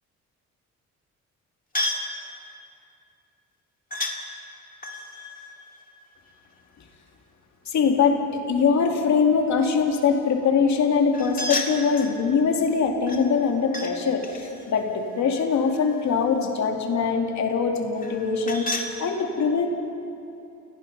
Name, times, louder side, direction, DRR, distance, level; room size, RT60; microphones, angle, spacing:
sound 1, 1.7-2.1 3.9-4.2 4.8-6.6 11.1-12.2 13.1-13.9 14.2-16.1 18.0-18.9, left 2 dB, 30° left, 2.4 m, -32 dB
voice 1, 7.7-19.7, left 5 dB, 65° left, 3 dB, 2.7 m, -22 dB
29.5 x 18.0 x 5.5 m, 2.7 s
cardioid pair, 90°, 30 cm